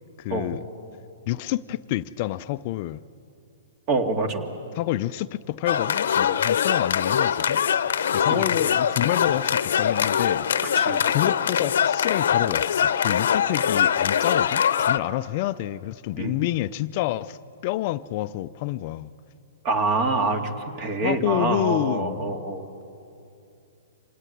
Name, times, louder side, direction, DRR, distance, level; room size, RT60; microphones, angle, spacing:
voice 1, 0.2-0.6 1.3-3.0 4.8-7.6 8.1-10.5 11.1-17.4 17.6-19.1 21.0-22.4, left 15 dB, 45° left, 0.5 m, -28 dB
voice 2, 3.9-4.5 8.3-8.5 10.7-11.0 16.2-16.4 19.6-22.7, right 3 dB, 35° right, 2.5 m, -26 dB
sound 1, 5.7-15.0, left 8 dB, 75° left, 0.9 m, -23 dB
26.0 x 18.0 x 9.9 m
hypercardioid pair, 135°, 0 cm